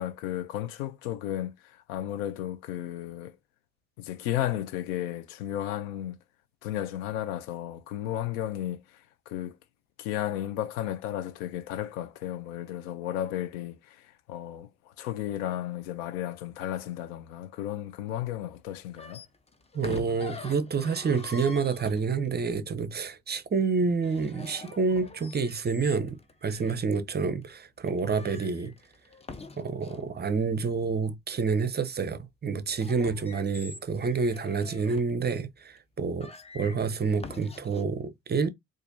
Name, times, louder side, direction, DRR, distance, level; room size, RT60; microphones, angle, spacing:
voice 1, 0.0-3.4 4.0-6.2 6.6-9.6 10.0-19.2, left 12 dB, 80° left, 0.6 m, -34 dB
sound 1, 18.9-22.4 23.9-26.8 27.4-27.5 27.9-30.1 32.6-35.1 35.8-35.9 36.2-37.8, left 3 dB, 15° left, 0.6 m, -45 dB
voice 2, 19.7-28.7 29.6-38.5, right 5 dB, 25° right, 0.6 m, -28 dB
4.2 x 2.5 x 2.6 m
hypercardioid pair, 65°, 40 cm